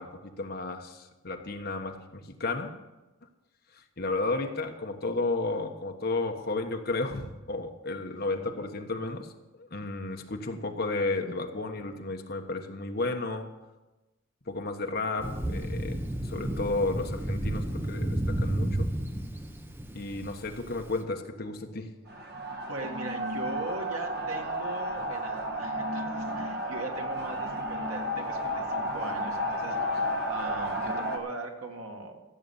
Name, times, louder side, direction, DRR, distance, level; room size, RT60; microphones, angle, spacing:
voice 1, 0.0-2.7 3.7-9.3 9.6-13.5 14.5-18.9 19.9-21.9, left 3 dB, 45° left, 4 dB, 1.3 m, -33 dB
Thunder, 15.2-20.9, right 1 dB, 10° right, 0.8 m, -31 dB
sound 1, 22.1-31.2, equal, 50° right, 1.5 m, -32 dB
voice 2, 22.7-32.2, right 2 dB, 90° right, 2 dB, 1.9 m, -40 dB
15.0 x 7.9 x 7.1 m, 1.1 s
head